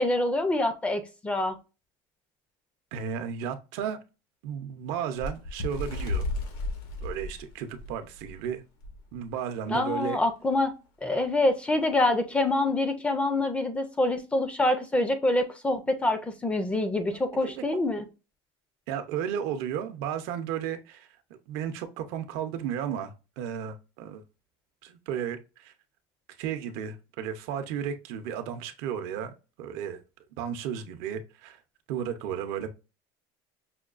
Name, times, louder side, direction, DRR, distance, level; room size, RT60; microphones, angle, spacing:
voice 1, 0.0-1.6 9.7-10.7 11.0-18.0, left 2 dB, 10° left, 0.4 m, -26 dB
voice 2, 2.9-4.0 4.4-6.2 7.0-8.6 9.1-10.2 17.4-17.6 18.9-24.2 24.8-25.7 26.4-29.3 29.6-30.0 30.4-31.6 31.9-32.7, right 8 dB, 70° right, 0.6 m, -34 dB
Bird, 5.2-8.4 8.8-9.0 9.3-9.5 10.3-10.4, left 2 dB, 85° left, 1.3 m, -33 dB
5.7 x 2.2 x 2.4 m
cardioid pair, 150°, 11 cm